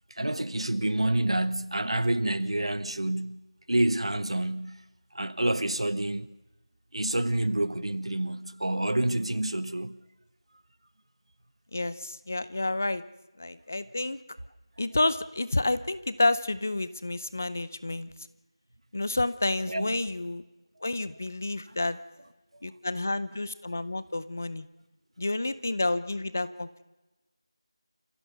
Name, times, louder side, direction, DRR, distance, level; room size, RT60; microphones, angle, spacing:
voice 1, 0.2-3.4 3.7-4.8 5.1-6.3 6.9-10.0 19.7-20.0, right 1 dB, 75° right, 1.4 m, -28 dB
voice 2, 11.7-13.0 13.4-14.2 14.8-18.1 18.9-20.4 20.8-22.0 22.6-24.7 25.2-26.8, left 2 dB, 25° left, 0.6 m, -29 dB
28.5 x 15.5 x 6.8 m
figure-of-eight pair, 180°, 3 cm